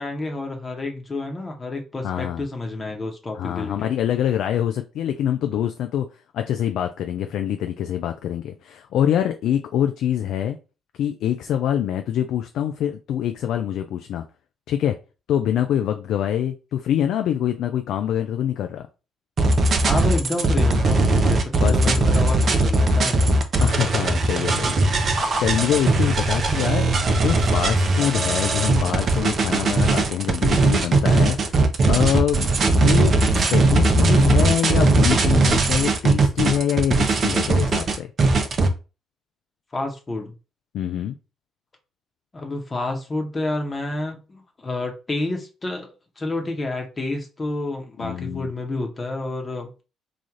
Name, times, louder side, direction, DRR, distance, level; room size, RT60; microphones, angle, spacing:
voice 1, 0.0-3.9 19.8-23.2 39.7-40.4 42.3-49.7, left 2 dB, 30° left, 1.0 m, -29 dB
voice 2, 2.0-2.4 3.4-6.1 6.3-10.6 10.9-14.2 14.7-15.0 15.3-18.9 21.5-22.1 23.6-38.1 40.7-41.2 48.0-48.5, left 10 dB, 65° left, 0.3 m, -25 dB
sound 1, 19.4-38.7, right 2 dB, 45° right, 0.6 m, -19 dB
3.2 x 2.4 x 3.7 m
hypercardioid pair, 45°, 0 cm